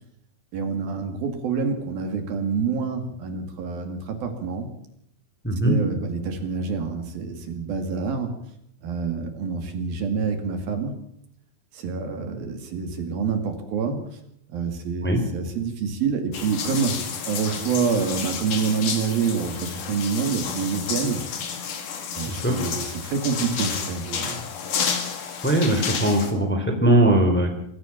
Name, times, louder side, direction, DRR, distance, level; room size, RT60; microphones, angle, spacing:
voice 1, 0.5-4.7 5.6-8.4 8.8-10.9 11.7-14.0 14.5-21.2 22.1-24.4, right 5 dB, 65° right, 6 dB, 4.0 m, -27 dB
voice 2, 5.4-5.8 15.0-15.2 22.3-22.6 25.4-27.5, right 1 dB, 5° left, 4 dB, 2.8 m, -20 dB
sound 1, 16.3-26.3, left 7 dB, 55° left, 3.5 m, -31 dB
25.0 x 14.5 x 7.2 m, 0.72 s
omnidirectional pair, 4.6 m